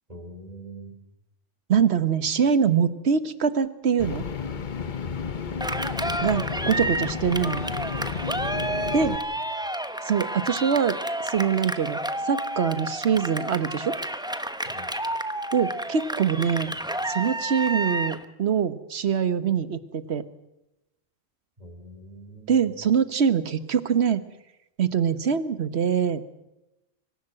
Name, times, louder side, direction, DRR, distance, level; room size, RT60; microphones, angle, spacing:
voice 1, 0.1-0.9 6.0-6.2 8.6-9.1 14.7-14.9 21.6-22.6, right 1 dB, 35° right, 4 dB, 4.2 m, -43 dB
voice 2, 1.7-4.2 6.2-7.6 8.9-9.2 10.0-12.0 12.2-13.9 15.5-16.7 17.1-20.2 22.5-24.2 24.8-26.2, right 7 dB, 60° right, 13 dB, 1.4 m, -24 dB
sound 1, 4.0-9.2, left 6 dB, 45° left, 1.0 m, -32 dB
Cheering, 5.6-18.2, right 1 dB, 5° right, 0.8 m, -30 dB
24.5 x 15.5 x 7.7 m, 0.91 s
omnidirectional pair, 1.2 m